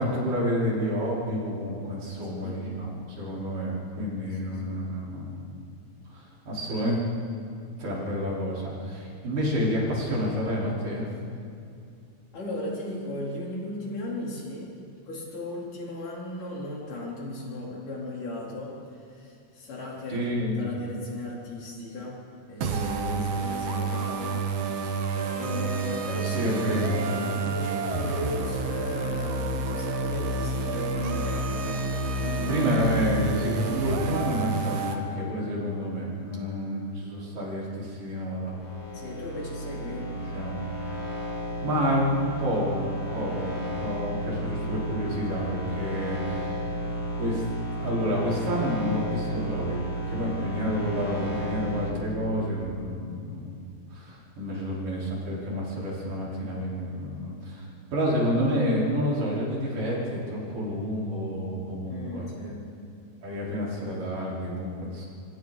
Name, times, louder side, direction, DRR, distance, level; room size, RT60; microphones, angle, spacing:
voice 1, 0.0-5.5 6.1-7.0 7.8-11.1 20.1-20.7 25.5-25.8 26.2-27.4 32.5-38.5 40.1-40.6 41.6-46.9 47.1-47.4 47.8-53.5 53.9-57.7 57.9-62.3 63.2-65.1, equal, 75° right, -6 dB, 6.2 m, -29 dB
voice 2, 2.3-2.7 4.2-4.8 12.3-14.7 15.1-22.2 22.5-24.4 25.3-32.7 35.4-35.6 38.9-40.1 61.9-62.7, left 1 dB, 70° left, -4 dB, 5.5 m, -36 dB
sound 1, 22.6-35.0, right 3 dB, 55° right, 2.3 m, -29 dB
sound 2, 38.5-51.9, equal, 55° left, 4.2 m, -33 dB
26.0 x 25.0 x 4.2 m, 2.5 s
omnidirectional pair, 3.7 m